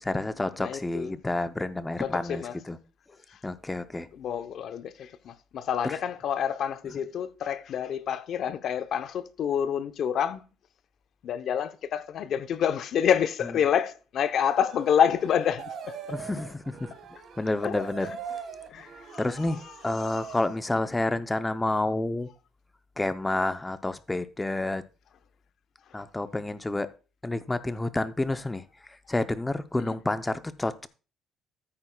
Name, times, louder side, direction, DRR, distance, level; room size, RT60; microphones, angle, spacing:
voice 1, 0.0-2.8 3.4-4.1 5.8-6.0 16.1-16.9 17.4-18.4 19.2-22.3 23.0-24.8 25.9-26.9 27.2-30.9, left 2 dB, 10° left, 0.6 m, -29 dB
voice 2, 0.6-1.2 2.0-2.6 3.3-3.4 4.1-10.4 11.2-15.9 17.6-17.9 18.7-19.6 20.0-20.3 29.8-30.0, left 8 dB, 45° left, 0.7 m, -28 dB
sound 1, 14.5-20.6, right 6 dB, 45° right, 1.7 m, -42 dB
14.0 x 8.7 x 2.3 m
cardioid pair, 165°, 0 cm